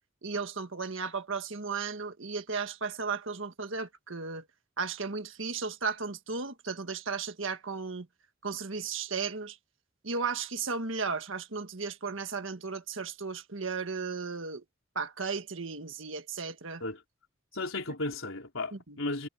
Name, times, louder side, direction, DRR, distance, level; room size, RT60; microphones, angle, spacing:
voice 1, 0.2-4.4 4.8-8.1 8.4-9.6 10.0-14.6 14.9-16.8 18.7-19.0, right 5 dB, 75° right, 1.7 m, -35 dB
voice 2, 17.5-19.3, left 2 dB, 80° left, 4.1 m, -34 dB
head